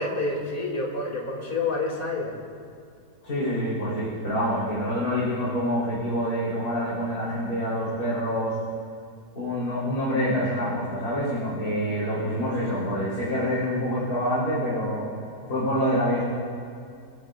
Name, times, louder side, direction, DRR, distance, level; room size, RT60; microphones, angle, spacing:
voice 1, 0.0-2.3, left 2 dB, 30° left, -2 dB, 2.9 m, -28 dB
voice 2, 3.2-8.5 9.4-15.0 15.5-16.2, equal, 55° left, -11 dB, 4.6 m, -26 dB
23.5 x 15.0 x 2.6 m, 2.3 s
omnidirectional pair, 1.9 m